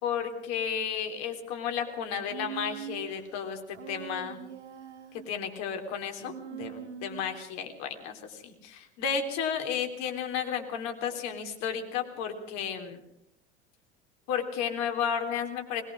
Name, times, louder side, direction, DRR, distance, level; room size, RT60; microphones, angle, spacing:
voice 1, 0.0-3.6 3.9-4.4 5.3-13.0 14.3-15.8, left 7 dB, 50° left, 5 dB, 3.6 m, -33 dB
Human voice, 2.3-3.2 3.7-5.3 6.2-7.4, right 9 dB, 70° right, 2.1 m, -42 dB
21.0 x 20.0 x 6.3 m, 0.81 s
figure-of-eight pair, 80°, 35 cm